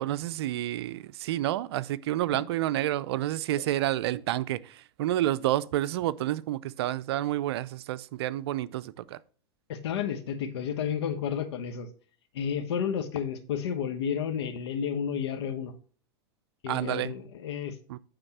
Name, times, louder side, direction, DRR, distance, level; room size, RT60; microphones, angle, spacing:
voice 1, 0.0-9.2 16.7-17.1 17.9-18.0, right 14 dB, 70° right, 0.5 m, -29 dB
voice 2, 9.7-11.9 12.3-15.7 16.6-17.8, left 8 dB, 75° left, 1.1 m, -31 dB
8.9 x 3.6 x 5.9 m
hypercardioid pair, 105°, 14 cm